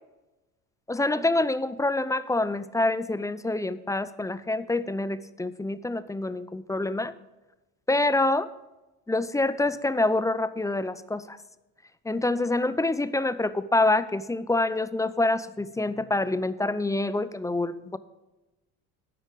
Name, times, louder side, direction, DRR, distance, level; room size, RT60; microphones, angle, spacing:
voice 1, 0.9-7.1 7.9-8.5 9.1-11.4 12.0-18.0, left 2 dB, 10° left, 15 dB, 0.5 m, -26 dB
13.5 x 9.9 x 3.6 m, 1.1 s
hypercardioid pair, 70°, 44 cm